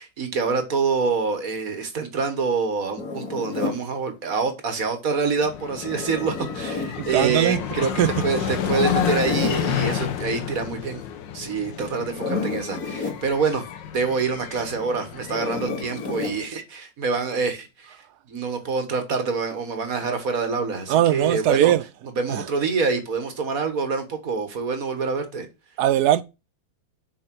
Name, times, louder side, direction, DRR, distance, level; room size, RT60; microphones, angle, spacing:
voice 1, 0.0-7.9 8.2-11.0 11.3-13.7 13.9-21.7 22.0-25.5, right 4 dB, 50° right, 1.7 m, -26 dB
Zipper (clothing), 3.0-3.8 5.8-7.0 8.5-9.6 12.0-13.2 15.3-16.4, left 4 dB, 50° left, 2.8 m, -30 dB
sound 1, 5.4-16.5, left 8 dB, 75° left, 1.6 m, -30 dB
voice 2, 7.0-7.6 8.0-8.2 20.9-21.8 22.3-22.5 25.8-26.2, right 11 dB, 65° right, 1.1 m, -20 dB
7.1 x 4.9 x 6.0 m
omnidirectional pair, 2.0 m